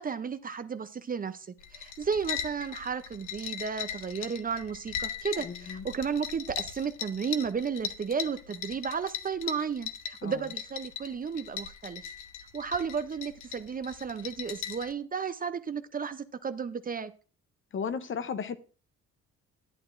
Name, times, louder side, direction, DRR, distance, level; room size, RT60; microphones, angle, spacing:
voice 1, 0.0-1.5 1.7-12.0 12.5-17.1, right 6 dB, 30° right, 0.5 m, -33 dB
sound 1, 1.6-14.9, left 9 dB, 80° left, 0.8 m, -39 dB
voice 2, 5.4-5.8 10.2-10.4 17.7-18.6, left 6 dB, 40° left, 0.7 m, -34 dB
10.5 x 8.8 x 2.5 m
cardioid pair, 90°, 30 cm